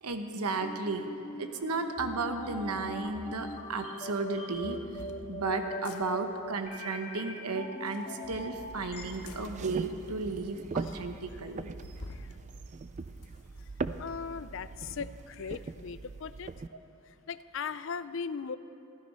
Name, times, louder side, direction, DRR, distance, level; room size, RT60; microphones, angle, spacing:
voice 1, 0.0-5.0 5.3-11.7, right 3 dB, 90° right, 6 dB, 1.0 m, -34 dB
sound 1, 0.6-9.0, equal, 30° left, 1.5 m, -41 dB
sound 2, 3.5-3.6 4.5-5.2 5.7-6.0 7.7-8.6 9.3-9.4 10.1-10.2 10.4-10.5 10.8-10.9 11.8-12.3 12.7-13.7, left 3 dB, 85° left, 0.9 m, -49 dB
sound 3, 8.6-16.7, right 3 dB, 30° right, 0.3 m, -41 dB
voice 2, 14.0-16.5 17.1-18.6, left 6 dB, 55° left, 15 dB, 0.4 m, -39 dB
14.5 x 13.0 x 5.4 m, 2.9 s
head